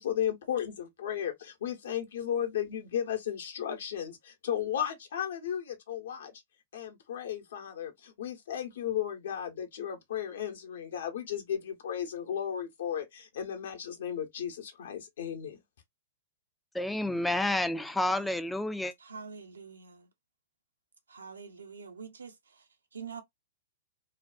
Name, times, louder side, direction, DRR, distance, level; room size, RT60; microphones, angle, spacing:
voice 1, 0.0-6.3 6.7-15.6, left 9 dB, 65° left, 0.8 m, -35 dB
voice 2, 16.7-18.9, left 1 dB, 5° left, 0.3 m, -29 dB
voice 3, 18.0-18.4 19.0-20.1 21.1-23.2, right 5 dB, 80° right, 0.6 m, -46 dB
2.3 x 2.2 x 2.3 m
figure-of-eight pair, 110°, 0 cm